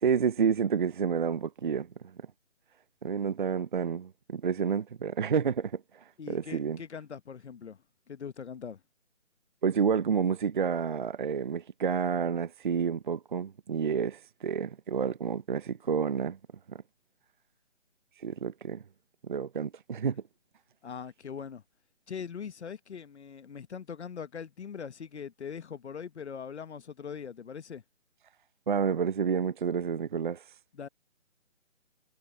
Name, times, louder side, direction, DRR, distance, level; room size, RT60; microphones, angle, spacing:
voice 1, 0.0-1.9 3.0-6.8 9.6-16.4 16.7-16.8 18.2-18.8 19.3-20.2 28.7-30.5, right 6 dB, 40° right, 0.6 m, -29 dB
voice 2, 6.2-7.8 8.1-8.8 20.8-21.6 22.1-27.8 30.7-30.9, left 7 dB, 60° left, 1.0 m, -41 dB
figure-of-eight pair, 155°, 38 cm